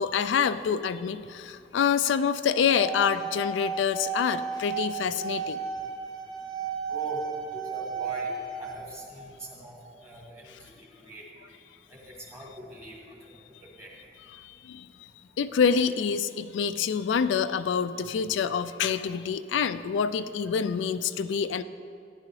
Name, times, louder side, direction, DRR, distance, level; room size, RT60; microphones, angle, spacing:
voice 1, 0.0-5.6 14.3-15.1 15.4-21.6, left 6 dB, 85° left, 11 dB, 0.3 m, -27 dB
sound 1, 2.5-8.7, right 5 dB, 40° right, 3.1 m, -34 dB
voice 2, 6.9-7.2 7.5-8.3 8.6-11.2 11.9-13.0 13.6-13.9, right 1 dB, 15° right, -3 dB, 2.0 m, -43 dB
14.5 x 10.5 x 3.2 m, 2.6 s
head